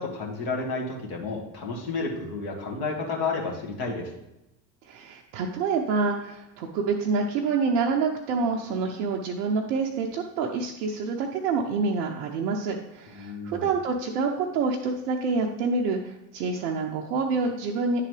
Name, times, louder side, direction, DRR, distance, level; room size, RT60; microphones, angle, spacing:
voice 1, 0.0-4.1 13.1-13.7, left 3 dB, 45° left, -1 dB, 1.7 m, -31 dB
voice 2, 4.9-18.0, right 4 dB, 65° right, 0 dB, 0.8 m, -27 dB
9.5 x 3.8 x 3.2 m, 0.89 s
figure-of-eight pair, 70°, 50 cm